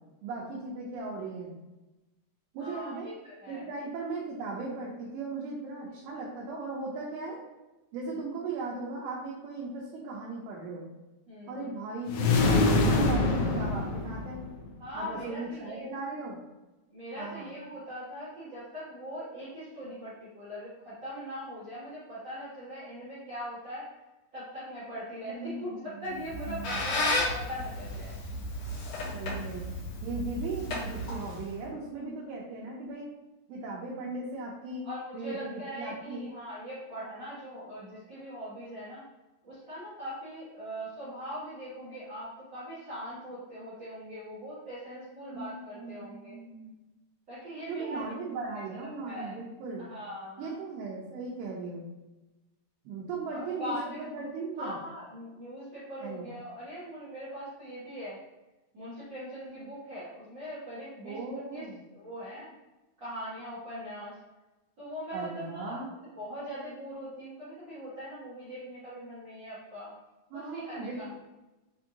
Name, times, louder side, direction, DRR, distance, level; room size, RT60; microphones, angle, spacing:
voice 1, 0.2-1.5 2.5-3.1 3.5-7.4 7.9-10.9 11.5-14.4 14.9-16.4 17.1-17.5 25.4-26.1 26.3-26.8 29.1-29.7 30.0-33.1 33.5-34.9 35.1-36.4 45.3-45.5 45.8-46.7 47.7-49.9 50.4-51.9 52.9-54.8 56.0-56.3 61.0-61.8 65.1-65.9 70.3-71.1, right 3 dB, 85° right, -5 dB, 2.7 m, -37 dB
voice 2, 2.6-3.7 11.3-11.6 14.8-15.9 16.9-23.9 24.3-28.2 34.8-39.0 39.4-46.4 47.3-48.0 48.7-49.3 49.8-50.6 53.3-54.0 54.6-58.2 58.7-61.7 61.9-62.5 63.0-64.2 64.8-65.8 66.2-69.9 70.3-71.1, equal, 60° right, -13 dB, 1.1 m, -41 dB
sound 1, 12.1-14.7, left 3 dB, 80° left, 2.5 m, -25 dB
Squeak, 26.1-31.6, left 1 dB, 60° left, 1.9 m, -33 dB
6.7 x 2.6 x 2.8 m, 1.1 s
omnidirectional pair, 4.4 m